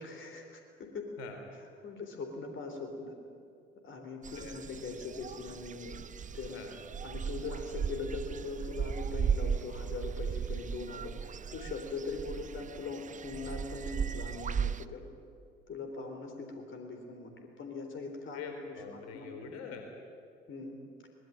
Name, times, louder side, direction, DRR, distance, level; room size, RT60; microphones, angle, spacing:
voice 1, 0.0-1.1 1.8-3.1 3.8-6.0 6.3-6.6 7.0-15.1 15.7-18.4 18.9-19.3 20.5-20.8, left 4 dB, 40° left, 4 dB, 3.8 m, -41 dB
sound 1, 4.2-14.8, right 7 dB, 25° right, 0.7 m, -36 dB
voice 2, 18.3-19.9, left 6 dB, 60° left, 4 dB, 3.8 m, -44 dB
24.0 x 20.0 x 9.0 m, 2.3 s
figure-of-eight pair, 55°, 29 cm